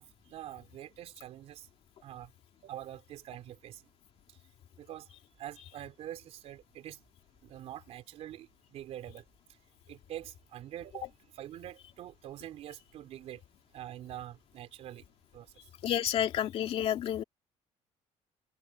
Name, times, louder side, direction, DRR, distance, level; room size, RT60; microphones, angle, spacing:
voice 1, 0.0-1.7 2.0-2.3 2.6-3.8 4.8-5.1 5.4-7.0 7.4-9.2 9.9-11.1 11.3-13.4 13.7-15.0 15.3-15.5, right 12 dB, 60° right, 3.5 m, -45 dB
voice 2, 15.8-17.2, left 10 dB, 55° left, 2.5 m, -30 dB
cardioid pair, 160°, 12 cm